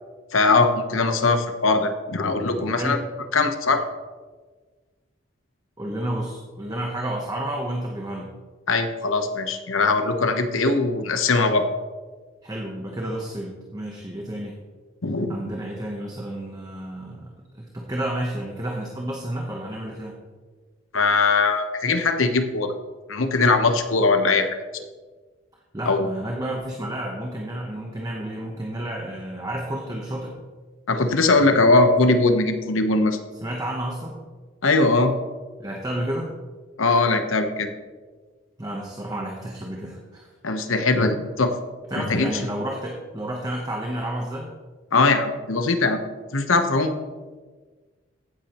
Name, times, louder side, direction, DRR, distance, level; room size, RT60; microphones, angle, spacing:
voice 1, 0.3-3.0 3.3-3.8 8.7-11.7 15.0-15.4 20.9-22.7 23.1-24.5 25.9-26.1 30.9-33.2 34.6-35.1 36.8-37.7 40.4-41.6 42.0-42.3 44.9-46.0 46.3-47.0, left 3 dB, 85° left, 7 dB, 1.0 m, -20 dB
voice 2, 2.6-3.0 5.8-8.3 12.4-14.6 15.3-20.2 25.7-30.4 33.4-34.2 35.6-36.3 38.6-40.3 41.9-44.5, right 1 dB, 20° right, -1 dB, 1.0 m, -31 dB
15.0 x 8.5 x 3.0 m, 1.4 s
head